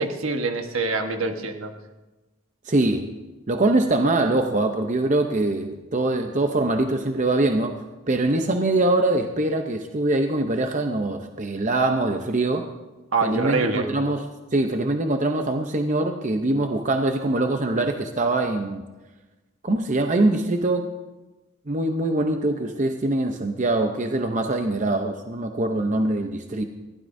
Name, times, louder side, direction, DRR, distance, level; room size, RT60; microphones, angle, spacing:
voice 1, 0.0-1.7 13.1-13.9, right 3 dB, 70° right, 5 dB, 1.3 m, -25 dB
voice 2, 2.6-3.1 3.5-7.8 8.1-12.7 13.2-14.3 14.5-18.8 19.6-20.9 21.7-26.6, right 2 dB, 35° right, 5 dB, 0.7 m, -23 dB
20.5 x 15.5 x 2.7 m, 1.1 s
head